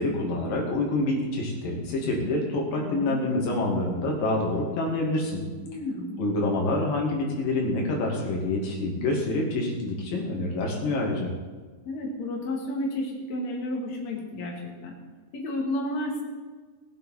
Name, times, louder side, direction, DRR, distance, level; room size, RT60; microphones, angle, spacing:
voice 1, 0.0-5.4 6.2-11.3, left 2 dB, 80° left, -1 dB, 4.3 m, -27 dB
voice 2, 2.8-3.2 5.6-6.4 11.8-14.9 15.3-16.2, left 1 dB, 55° left, -1 dB, 3.3 m, -32 dB
19.5 x 8.0 x 5.7 m, 1.4 s
omnidirectional pair, 3.9 m